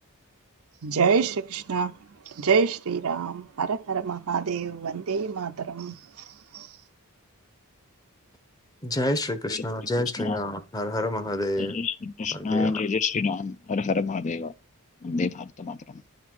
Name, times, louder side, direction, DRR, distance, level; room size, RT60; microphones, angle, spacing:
voice 1, 0.8-1.9 2.4-5.9, right 5 dB, 65° right, 0.6 m, -26 dB
voice 2, 8.8-11.8 12.3-12.7, left 1 dB, 15° left, 0.9 m, -28 dB
voice 3, 11.6-14.5 15.0-16.0, left 4 dB, 35° left, 0.4 m, -28 dB
11.0 x 4.0 x 6.1 m
head